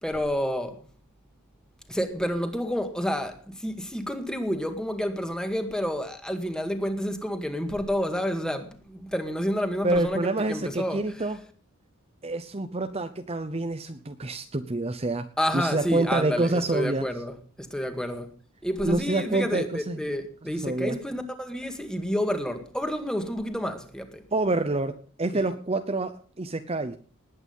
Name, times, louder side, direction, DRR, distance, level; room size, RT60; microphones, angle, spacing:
voice 1, 0.0-0.8 1.9-11.3 15.4-18.3 18.6-24.2 25.3-25.5, equal, 5° left, 1.9 m, -29 dB
voice 2, 9.8-11.4 12.2-15.3 15.5-17.1 18.8-20.1 20.6-21.0 24.3-27.0, right 2 dB, 30° right, 0.8 m, -27 dB
19.5 x 8.9 x 5.5 m
head